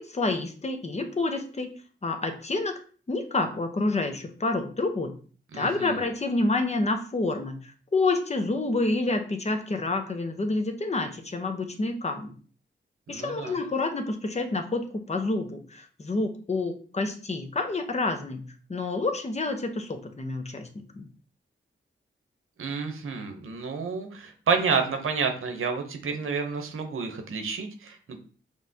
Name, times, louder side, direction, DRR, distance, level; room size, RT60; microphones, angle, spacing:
voice 1, 0.0-1.7 2.0-2.8 3.1-5.1 5.5-12.3 13.1-18.4 18.7-20.7 20.9-21.1, left 2 dB, 35° left, 6 dB, 0.8 m, -28 dB
voice 2, 5.5-6.0 13.1-13.6 22.6-28.2, right 5 dB, 90° right, 5 dB, 0.7 m, -30 dB
5.3 x 3.2 x 2.7 m, 0.40 s
cardioid pair, 65°, 21 cm